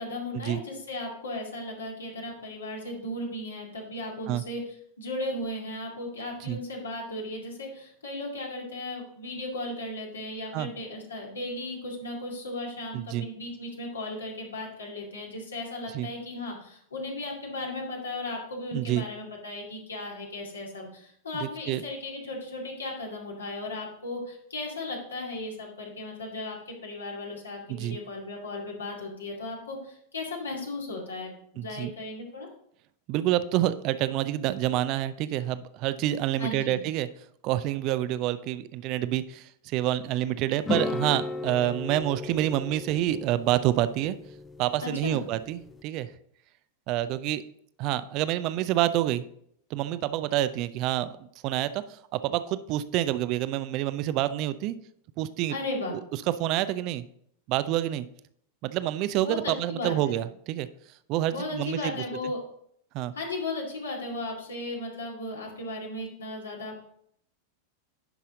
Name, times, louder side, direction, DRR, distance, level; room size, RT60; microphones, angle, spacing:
voice 1, 0.0-4.6 5.0-32.5 36.4-36.8 44.8-45.3 55.5-55.9 59.2-60.2 61.3-62.4 63.1-66.8, left 2 dB, 70° left, -1 dB, 2.3 m, -36 dB
voice 2, 12.9-13.3 15.9-16.1 18.7-19.0 21.4-21.8 27.7-28.0 31.6-31.9 33.1-37.1 37.4-44.2 44.6-46.1 46.9-47.4 47.8-49.2 49.7-51.2 51.4-54.8 55.2-55.5 55.9-56.0 56.4-57.0 57.5-58.1 58.6-60.7 61.1-61.9 62.9-63.1, right 13 dB, 40° right, 14 dB, 0.4 m, -28 dB
sound 1, 40.6-45.8, left 3 dB, 15° left, 0.5 m, -36 dB
10.5 x 5.6 x 3.8 m, 0.68 s
figure-of-eight pair, 90°, 0 cm